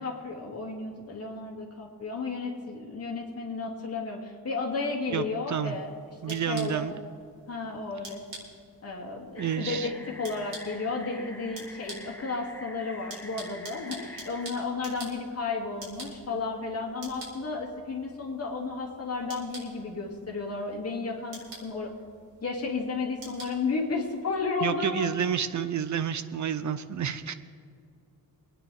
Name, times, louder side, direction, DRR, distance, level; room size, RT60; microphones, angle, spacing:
voice 1, 0.0-5.9 6.3-6.9 7.5-8.2 8.8-21.9 22.4-25.1, left 4 dB, 40° left, -1 dB, 2.5 m, -33 dB
voice 2, 5.1-5.7 6.2-6.9 9.4-9.9 24.6-27.3, right 8 dB, 50° right, 12 dB, 0.6 m, -29 dB
sound 1, 5.7-24.4, right 2 dB, 75° right, 4.3 m, -49 dB
sound 2, 9.4-14.5, left 1 dB, 5° left, 0.9 m, -46 dB
24.5 x 9.9 x 3.5 m, 2.3 s
wide cardioid pair, 155°, 37 cm